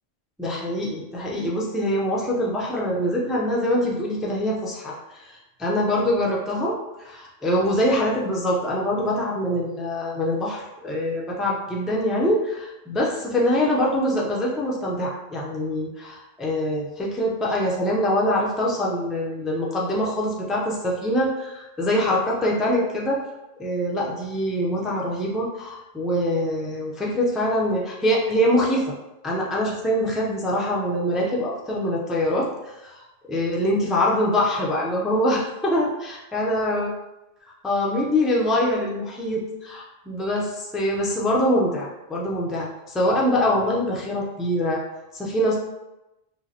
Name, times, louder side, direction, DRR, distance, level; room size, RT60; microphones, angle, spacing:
voice 1, 0.4-23.2 23.6-28.8 29.2-36.9 37.4-44.8 45.1-45.6, left 1 dB, ahead, -3 dB, 0.4 m, -24 dB
5.2 x 2.0 x 2.8 m, 0.96 s
omnidirectional pair, 1.0 m